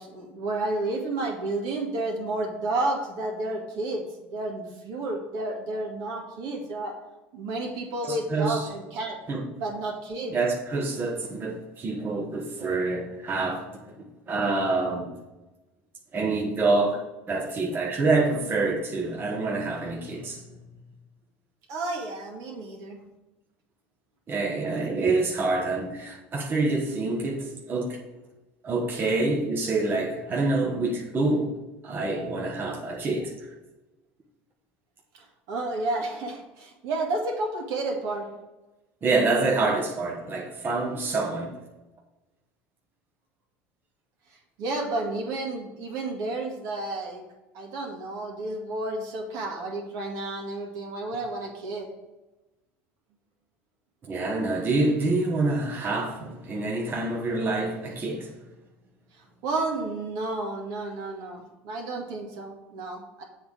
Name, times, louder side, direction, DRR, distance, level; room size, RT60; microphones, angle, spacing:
voice 1, 0.0-7.0 7.3-9.2 9.6-10.3 21.7-23.0 35.1-38.3 44.6-47.2 47.5-51.9 59.4-63.2, right 2 dB, 65° right, 2.0 m, -31 dB
voice 2, 8.1-8.7 9.3-9.4 10.3-13.6 14.3-15.1 16.1-17.0 17.3-20.4 24.3-28.0 28.6-31.5 31.8-33.5 39.0-41.5 54.1-58.3, right 3 dB, 35° right, 1.2 m, -26 dB
7.8 x 3.6 x 6.3 m
supercardioid pair, 95°, 6 cm